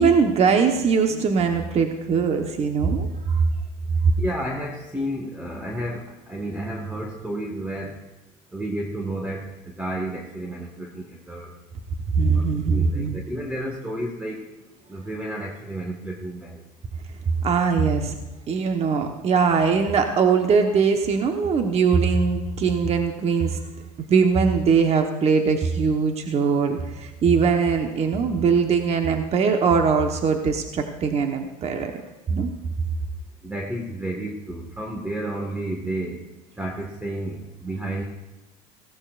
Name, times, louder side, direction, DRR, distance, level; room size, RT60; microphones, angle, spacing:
voice 1, 0.0-3.4 12.1-13.2 17.4-18.2 18.5-23.6 24.1-32.5, right 5 dB, 40° right, 4 dB, 1.3 m, -21 dB
voice 2, 4.2-8.0 8.5-11.5 12.3-14.4 14.9-16.6 33.4-36.3 36.6-38.0, right 1 dB, 10° right, 0 dB, 1.8 m, -31 dB
17.5 x 15.5 x 2.6 m, 1.0 s
supercardioid pair, 100°, 17 cm